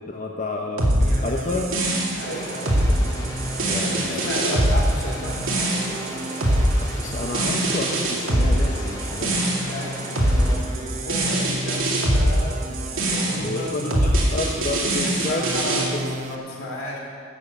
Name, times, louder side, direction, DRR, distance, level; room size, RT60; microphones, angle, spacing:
voice 1, 0.0-1.7 3.7-4.2 6.7-9.5 13.4-14.0 14.3-15.5 15.9-16.1, left 2 dB, 40° left, 1 dB, 0.8 m, -30 dB
sound 1, 0.8-15.9, right 1 dB, 85° right, 2.5 m, -22 dB
sound 2, 1.0-16.4, right 1 dB, 35° right, 0.7 m, -36 dB
voice 2, 1.1-1.6 2.2-3.2 3.8-5.5 9.6-13.9 15.0-17.0, left 1 dB, 80° left, -3 dB, 3.5 m, -34 dB
sound 3, 2.2-10.6, equal, 15° left, 1.8 m, -37 dB
12.0 x 7.2 x 8.2 m, 2.1 s
head